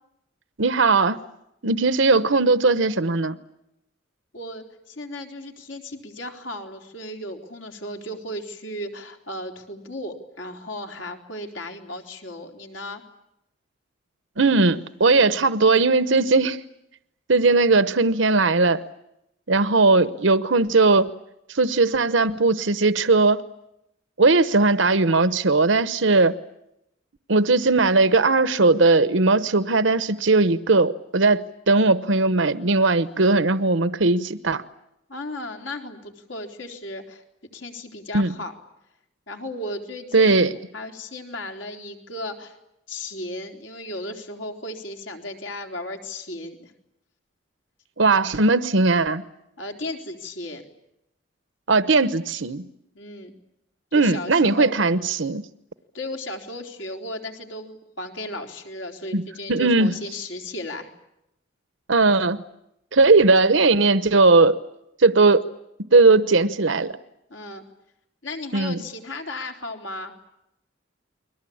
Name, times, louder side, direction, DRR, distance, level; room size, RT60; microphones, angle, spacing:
voice 1, 0.6-1.2 1.6-3.4 14.4-16.6 17.3-18.8 19.5-21.1 21.5-23.4 24.2-26.3 27.3-34.6 38.1-38.3 40.1-40.5 48.0-49.2 51.7-52.6 53.9-55.4 59.1-59.2 59.5-60.0 61.9-62.4 62.9-64.6 65.0-65.4 65.9-67.0 68.5-68.8, right 3 dB, 70° right, 12 dB, 1.0 m, -18 dB
voice 2, 4.3-13.0 35.1-37.2 37.5-38.5 39.3-42.6 42.9-46.7 49.6-50.6 53.0-53.3 53.9-54.7 55.9-60.9 67.3-67.6 68.2-70.1, left 1 dB, 70° left, 3 dB, 3.9 m, -35 dB
30.0 x 22.5 x 8.7 m, 0.84 s
head